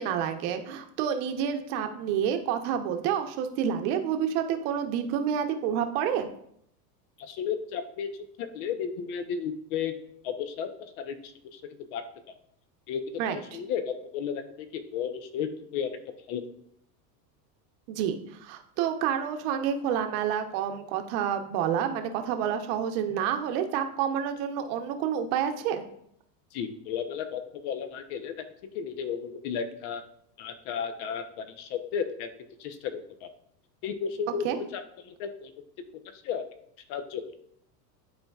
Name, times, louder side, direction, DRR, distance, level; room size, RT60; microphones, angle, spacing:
voice 1, 0.0-6.3 13.2-13.6 17.9-25.8 34.4-34.6, right 8 dB, 50° right, 6 dB, 0.9 m, -29 dB
voice 2, 7.2-8.1 8.4-9.9 10.2-10.7 11.0-11.6 11.9-12.0 12.9-13.0 13.3-16.0 16.3-16.4 26.5-28.3 28.7-30.0 30.4-32.3 32.6-32.9 33.2-33.3 33.8-34.4 34.7-35.5 36.1-36.4 36.9-37.2, left 7 dB, 55° left, 8 dB, 0.9 m, -33 dB
11.0 x 4.4 x 2.4 m, 0.70 s
supercardioid pair, 140°, 49 cm